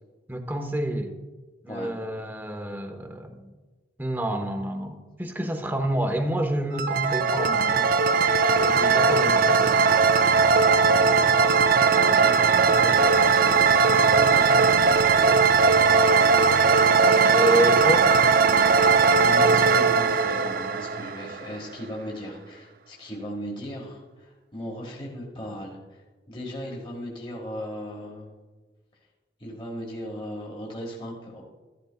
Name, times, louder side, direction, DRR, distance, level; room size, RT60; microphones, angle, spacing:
voice 1, 0.3-1.1 1.6-3.5 4.0-7.9 8.4-9.9 12.8-13.3 17.3-18.1, right 1 dB, 10° right, 5 dB, 0.9 m, -28 dB
sound 1, 6.7-21.6, right 5 dB, 50° right, 0.4 m, -19 dB
voice 2, 11.9-12.9 14.1-14.7 19.2-28.3 29.4-31.4, equal, 30° left, -2 dB, 1.5 m, -37 dB
14.0 x 11.5 x 2.2 m, 1.3 s
head